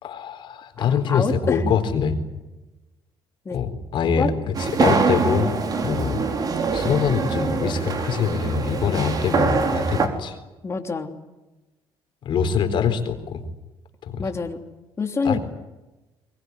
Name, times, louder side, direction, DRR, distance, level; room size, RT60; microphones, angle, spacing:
voice 1, 0.0-2.2 3.5-5.5 5.8-6.2 6.7-10.4 12.2-13.4 14.0-14.3 15.2-15.4, left 6 dB, 60° left, 8 dB, 4.0 m, -24 dB
voice 2, 0.8-1.7 3.4-3.6 4.0-4.3 8.9-9.1 10.6-11.1 14.2-14.6 15.0-15.4, left 4 dB, 30° left, 4 dB, 3.1 m, -27 dB
sound 1, 4.5-10.1, right 4 dB, 45° right, 4.0 m, -24 dB
23.0 x 22.0 x 9.7 m, 1.1 s
cardioid pair, 100°, 9 cm